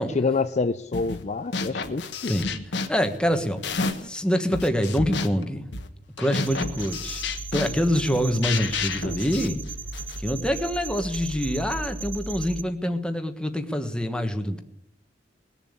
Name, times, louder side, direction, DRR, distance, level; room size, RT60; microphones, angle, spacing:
voice 1, 0.1-2.3, left 4 dB, 40° left, 10 dB, 0.5 m, -27 dB
sound 1, 0.9-1.2 1.5-4.2 4.5-10.2, left 4 dB, 70° left, 1.4 m, -31 dB
voice 2, 2.9-3.6 4.0-5.6 6.2-7.2 7.5-9.6 10.2-14.6, equal, 5° left, 6 dB, 1.4 m, -25 dB
sound 2, 6.5-12.6, right 3 dB, 30° right, 0.8 m, -36 dB
20.0 x 7.1 x 8.8 m, 0.76 s
head